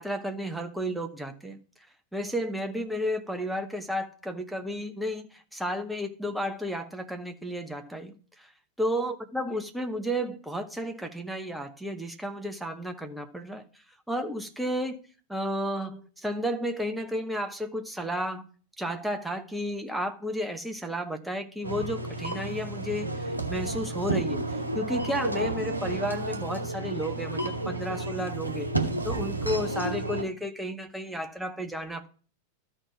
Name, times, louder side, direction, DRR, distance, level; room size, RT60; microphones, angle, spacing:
voice 1, 0.0-1.6 2.1-8.5 8.8-13.7 14.1-15.0 15.3-18.4 18.8-24.4 24.7-28.7 29.0-32.1, equal, ahead, 1.0 m, -32 dB
sound 1, 21.6-30.2, right 2 dB, 85° right, 1.0 m, -31 dB
13.5 x 4.4 x 4.6 m
figure-of-eight pair, 90°, 0 cm